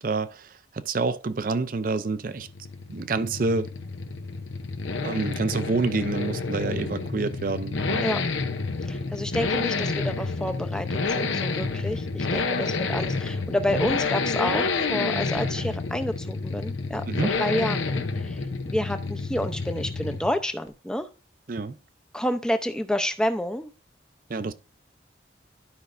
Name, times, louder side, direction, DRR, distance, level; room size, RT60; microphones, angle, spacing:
voice 1, 0.0-2.5 2.9-3.7 5.0-8.1 17.1-17.3 21.5-21.8 24.3-24.5, right 3 dB, 45° right, 0.5 m, -28 dB
Accelerating revving vroom, 2.2-20.4 20.7-20.8, left 4 dB, 85° left, 0.8 m, -29 dB
voice 2, 8.9-17.0 17.4-18.4 18.6-21.1 22.1-23.7, left 1 dB, 5° left, 0.5 m, -29 dB
12.0 x 5.2 x 2.5 m
head